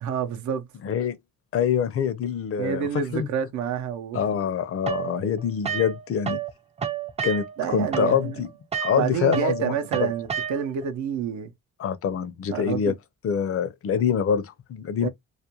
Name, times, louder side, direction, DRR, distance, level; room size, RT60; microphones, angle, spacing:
voice 1, 0.0-0.7 2.6-4.2 7.6-8.4 8.9-11.5 12.5-12.9 15.0-15.1, right 8 dB, 70° right, 0.6 m, -28 dB
voice 2, 0.8-1.2 1.5-3.3 4.1-6.4 7.2-8.5 8.8-10.1 11.8-12.9 13.2-15.1, left 7 dB, 50° left, 0.5 m, -25 dB
sound 1, 4.9-6.5 6.8-10.9, right 8 dB, 20° right, 0.4 m, -31 dB
2.4 x 2.1 x 2.8 m
cardioid pair, 90°, 30 cm